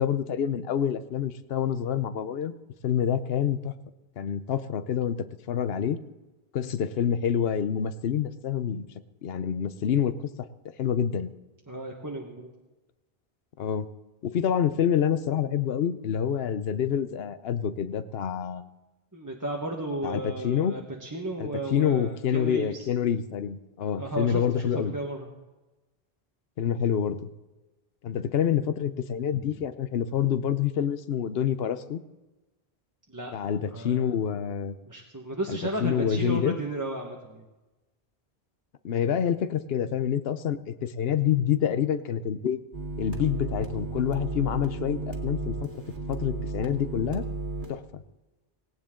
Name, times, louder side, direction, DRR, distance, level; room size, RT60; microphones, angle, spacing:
voice 1, 0.0-2.6 2.8-3.7 4.2-5.2 5.5-6.0 6.5-8.9 9.2-10.1 10.8-11.3 13.6-13.9 14.2-18.6 20.0-20.8 21.4-24.9 26.6-27.3 28.0-32.0 33.3-34.7 35.5-36.6 38.8-42.6 43.0-45.8 46.1-47.2 47.7-48.0, left 8 dB, 70° left, 12 dB, 1.0 m, -27 dB
voice 2, 11.7-12.5 19.1-22.9 24.0-25.3 33.1-34.1 34.9-37.4, right 1 dB, 20° right, -1 dB, 1.3 m, -34 dB
sound 1, 42.7-47.7, right 2 dB, 50° right, 2.3 m, -34 dB
17.5 x 17.5 x 3.8 m, 1.1 s
omnidirectional pair, 1.1 m